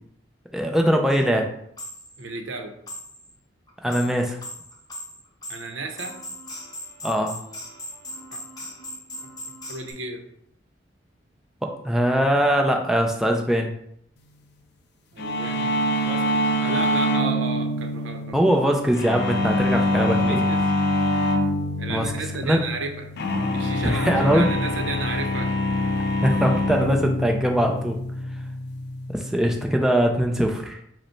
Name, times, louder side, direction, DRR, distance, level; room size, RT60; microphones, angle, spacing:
voice 1, 0.5-1.5 3.8-4.4 7.0-7.4 11.6-13.7 18.3-20.4 21.9-22.1 22.4-22.6 23.8-24.5 26.2-28.0 29.1-30.8, equal, ahead, 2 dB, 0.4 m, -21 dB
sound 1, 0.7-0.8 1.1-1.2 1.8-2.2 2.9-3.3 3.7-9.9, left 1 dB, 20° left, 0.8 m, -39 dB
voice 2, 2.2-2.7 5.5-6.2 8.3-8.4 9.7-10.3 15.1-18.5 20.3-20.7 21.8-23.1 23.5-25.5, right 3 dB, 85° right, 5 dB, 0.7 m, -33 dB
sound 2, 15.2-29.6, left 1 dB, 60° left, 0.4 m, -25 dB
5.1 x 2.1 x 4.4 m, 0.71 s
head